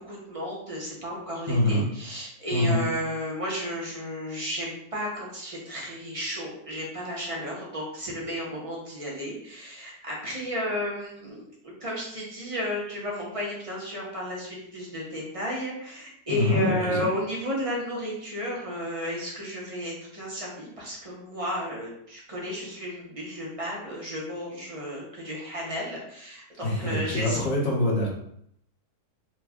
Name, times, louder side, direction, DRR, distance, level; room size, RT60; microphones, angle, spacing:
voice 1, 0.0-27.4, equal, 30° right, -4 dB, 0.6 m, -33 dB
voice 2, 1.5-1.8 2.5-2.8 16.3-17.1 26.6-28.1, left 1 dB, 55° left, -3 dB, 1.3 m, -25 dB
3.1 x 2.3 x 3.5 m, 0.71 s
omnidirectional pair, 1.6 m